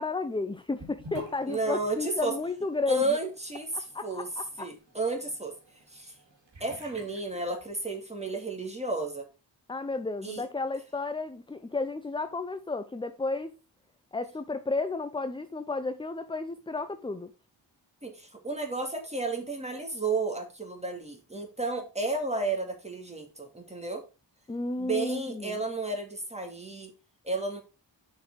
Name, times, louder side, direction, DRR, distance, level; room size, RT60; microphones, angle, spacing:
voice 1, 0.0-3.2 3.9-4.7 9.7-13.5 14.1-17.3 24.5-25.6, left 3 dB, 10° left, 0.5 m, -32 dB
Sink (filling or washing) / Bathtub (filling or washing), 0.8-8.1, equal, 75° right, 2.4 m, -49 dB
voice 2, 1.5-2.4 2.9-4.3 4.6-5.5 5.9-6.1 6.6-9.3 10.2-10.4 18.0-24.0 24.8-26.9 27.2-27.6, right 2 dB, 15° right, 2.3 m, -32 dB
6.4 x 4.8 x 4.6 m
cardioid pair, 55°, 45 cm